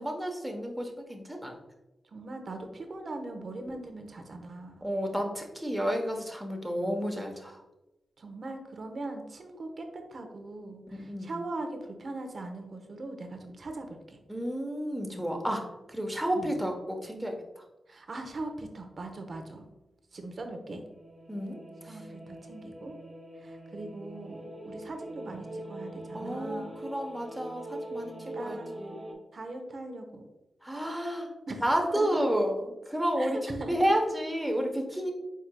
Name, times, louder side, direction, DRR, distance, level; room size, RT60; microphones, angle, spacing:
voice 1, 0.0-1.6 4.8-7.6 11.0-11.3 14.3-15.6 15.9-17.6 21.3-21.6 21.8-22.0 26.1-29.0 30.6-31.3 31.6-35.1, equal, 10° right, 2 dB, 1.0 m, -31 dB
voice 2, 2.1-4.8 8.2-14.2 16.4-16.5 17.9-19.7 20.1-20.8 21.8-22.9 23.4-26.8 27.9-28.8 29.3-30.3 31.5-31.6 31.9-32.2 33.2-33.9, right 2 dB, 55° right, 5 dB, 0.8 m, -40 dB
sound 1, 20.8-29.1, right 1 dB, 40° right, 1.3 m, -42 dB
4.7 x 4.4 x 2.2 m, 0.98 s
cardioid pair, 55°, 0 cm